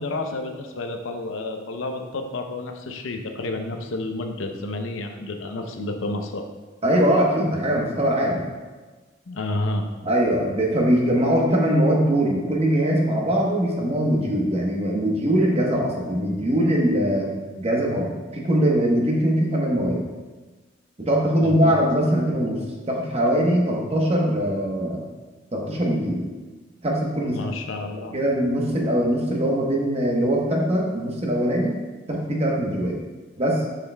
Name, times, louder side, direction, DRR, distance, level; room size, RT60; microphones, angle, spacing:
voice 1, 0.0-6.4 9.3-9.8 21.4-21.8 27.2-28.1, left 2 dB, 90° left, 4 dB, 0.7 m, -30 dB
voice 2, 6.8-8.4 10.0-17.3 17.6-20.0 21.0-22.6 22.9-25.0 25.5-26.2 26.8-27.4 28.1-31.7 32.1-33.0 33.4-33.6, equal, 35° right, -1 dB, 1.0 m, -21 dB
6.7 x 6.6 x 2.2 m, 1.3 s
head